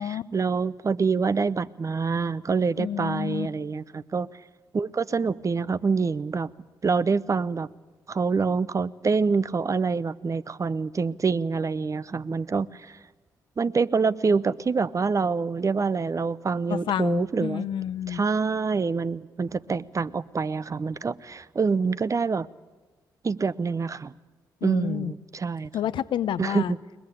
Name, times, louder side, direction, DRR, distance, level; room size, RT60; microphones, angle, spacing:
voice 1, 0.0-4.3 4.7-6.5 6.8-7.7 8.1-12.9 13.6-17.7 18.1-22.5 23.2-24.1 24.6-25.7 26.4-26.8, right 4 dB, 40° right, 0.7 m, -26 dB
voice 2, 2.8-3.5 16.7-18.2 24.6-25.1 25.7-26.7, left 10 dB, 75° left, 0.7 m, -29 dB
21.5 x 20.0 x 8.5 m
supercardioid pair, 50°, 8 cm